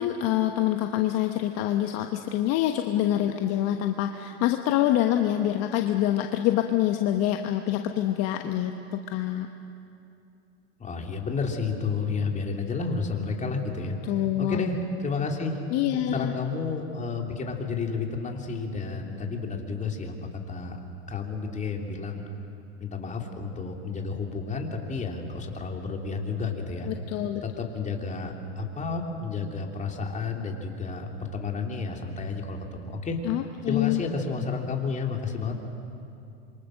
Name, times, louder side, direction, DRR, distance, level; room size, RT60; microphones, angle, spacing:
voice 1, 0.0-9.5 14.0-14.6 15.7-16.3 26.9-27.4 33.2-34.0, left 12 dB, 50° left, 5 dB, 1.2 m, -26 dB
voice 2, 10.8-14.1 14.4-15.6 16.1-20.1 20.5-20.8 21.1-22.2 22.8-26.9 27.4-33.2 33.7-35.6, left 4 dB, 20° left, 2 dB, 3.1 m, -31 dB
27.0 x 24.0 x 6.5 m, 2.6 s
hypercardioid pair, 95°, 34 cm